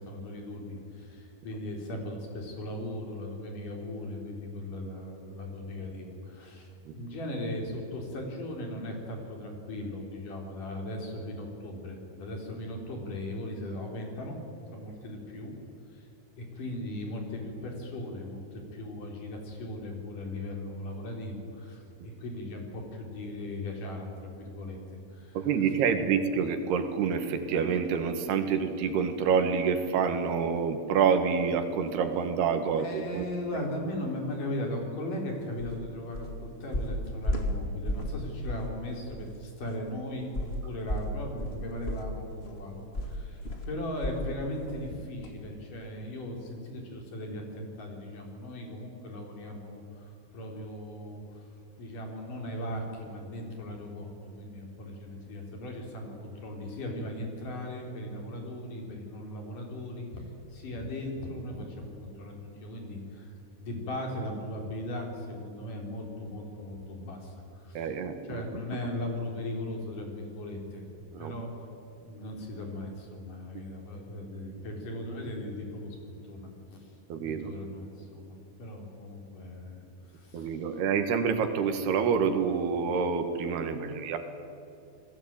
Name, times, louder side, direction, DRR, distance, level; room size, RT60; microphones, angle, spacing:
voice 1, 0.0-14.4 14.7-15.5 15.9-16.1 16.4-25.5 32.7-51.4 51.8-67.9 68.3-70.9 71.2-71.7 72.0-76.0 76.3-77.0 77.2-80.7 83.6-84.0, left 1 dB, 55° left, 2 dB, 5.3 m, -38 dB
voice 2, 25.4-33.3 67.8-68.4 71.1-71.3 73.6-73.7 77.1-77.5 80.3-84.2, right 6 dB, 75° right, 7 dB, 3.7 m, -27 dB
sound 1, 35.6-35.8 36.1-36.4 36.7-38.2 38.5-38.7 39.1-39.2 40.3-44.3 44.7-44.9 45.2-45.3, left 1 dB, 30° left, 1.2 m, -33 dB
30.0 x 20.0 x 9.0 m, 2.6 s
omnidirectional pair, 4.7 m